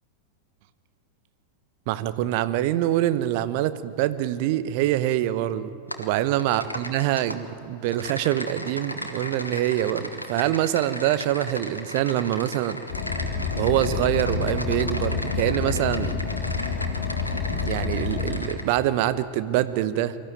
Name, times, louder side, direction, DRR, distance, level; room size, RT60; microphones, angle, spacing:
voice 1, 1.9-5.7 6.0-12.8 13.6-16.1 17.5-20.2, right 13 dB, 45° right, 13 dB, 0.9 m, -25 dB
Typing, 5.9-6.1 6.4-7.4 7.9-18.6, left 1 dB, 85° left, 1.6 m, -36 dB
Car, 12.9-18.4, left 5 dB, 55° left, 2.6 m, -28 dB
24.0 x 14.0 x 9.2 m, 2.9 s
figure-of-eight pair, 90°, 0 cm